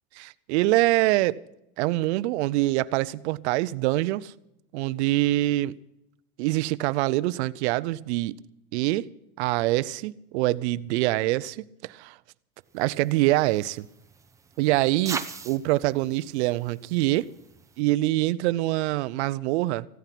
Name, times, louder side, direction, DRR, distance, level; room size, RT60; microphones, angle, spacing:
voice 1, 0.2-1.4 1.8-4.3 4.7-5.7 6.4-8.3 8.7-9.1 9.4-12.1 12.7-13.9 14.6-17.3 17.8-19.9, right 18 dB, 50° right, 0.6 m, -25 dB
sound 1, 12.7-17.8, right 5 dB, 5° right, 0.6 m, -41 dB
16.0 x 13.0 x 5.9 m
supercardioid pair, 140°, 44 cm